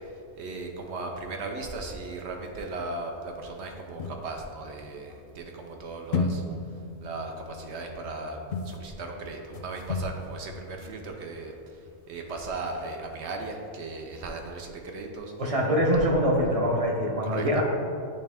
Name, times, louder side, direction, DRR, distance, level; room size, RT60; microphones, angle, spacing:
voice 1, 0.4-6.4 7.0-8.4 8.7-11.5 12.1-15.3 17.2-17.5, right 3 dB, 70° right, 2 dB, 0.9 m, -37 dB
sound 1, 4.0-5.4 6.1-11.1 11.5-11.6 11.8-11.9 12.2-12.3 12.5-12.9, left 3 dB, 60° left, 0.7 m, -35 dB
voice 2, 15.4-17.6, equal, 35° right, 0 dB, 0.8 m, -24 dB
9.3 x 3.3 x 3.4 m, 2.4 s
omnidirectional pair, 1.2 m